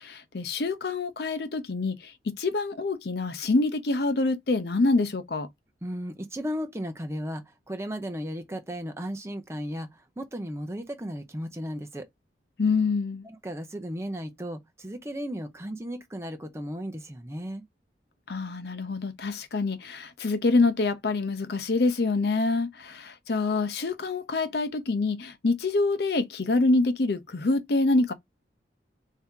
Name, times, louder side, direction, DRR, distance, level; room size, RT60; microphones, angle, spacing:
voice 1, 0.0-2.1 2.4-5.5 12.6-13.3 18.3-28.1, left 3 dB, 65° left, 0.6 m, -26 dB
voice 2, 5.8-12.1 13.2-17.6, equal, 15° right, 0.7 m, -35 dB
3.5 x 2.7 x 3.6 m
head